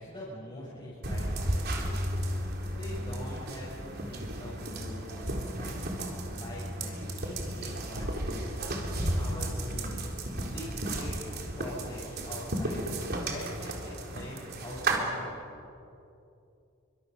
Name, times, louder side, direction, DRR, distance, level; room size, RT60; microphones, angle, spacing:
voice 1, 0.0-2.0 2.4-8.5 8.9-11.2 11.6-15.3, equal, 25° left, -7 dB, 6.9 m, -43 dB
sound 1, 1.0-15.0, right 1 dB, 50° right, 3.8 m, -34 dB
29.5 x 25.0 x 7.0 m, 2.7 s
head